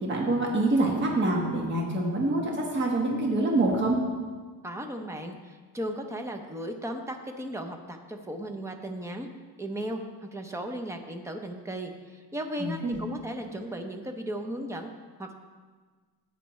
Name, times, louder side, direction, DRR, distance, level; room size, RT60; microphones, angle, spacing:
voice 1, 0.0-4.0 12.6-13.0, right 2 dB, 30° right, -1 dB, 1.4 m, -26 dB
voice 2, 4.6-9.3 9.6-10.0 10.3-14.9 15.2-15.3, right 1 dB, 10° right, 5 dB, 0.6 m, -36 dB
13.5 x 9.1 x 3.1 m, 1.5 s
cardioid pair, 170°, 37 cm